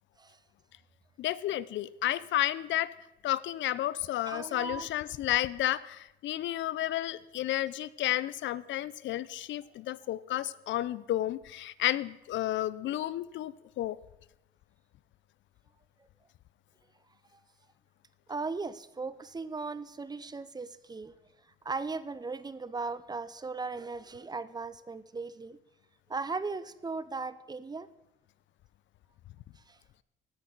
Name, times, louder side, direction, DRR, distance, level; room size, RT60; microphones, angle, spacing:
voice 1, 1.2-2.9 3.2-14.0, left 14 dB, 70° left, 19 dB, 0.4 m, -32 dB
voice 2, 4.3-4.9 18.3-21.1 21.6-25.6 26.1-27.9 29.7-29.8, right 4 dB, 20° right, 15 dB, 0.4 m, -37 dB
16.5 x 6.1 x 3.9 m, 0.91 s
cardioid pair, 90°, 20 cm